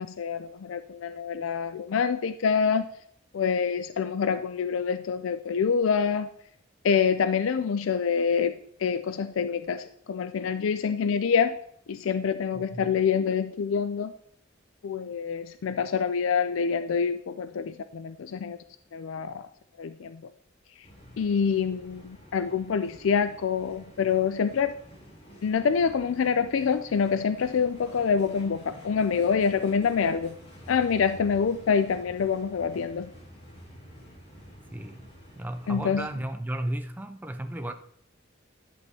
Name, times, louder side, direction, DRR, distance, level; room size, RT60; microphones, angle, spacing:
voice 1, 0.0-2.9 3.3-6.3 6.8-8.6 8.8-11.6 11.9-14.1 14.8-18.6 18.9-19.5 19.8-20.2 21.2-24.7 25.4-30.4 30.7-33.1 35.7-36.1, left 6 dB, 80° left, 0.4 m, -26 dB
voice 2, 12.5-12.9 34.7-35.1 35.4-37.7, right 1 dB, 10° right, 0.4 m, -34 dB
sound 1, 20.8-36.1, equal, 30° left, 3.4 m, -49 dB
11.0 x 8.1 x 2.8 m
head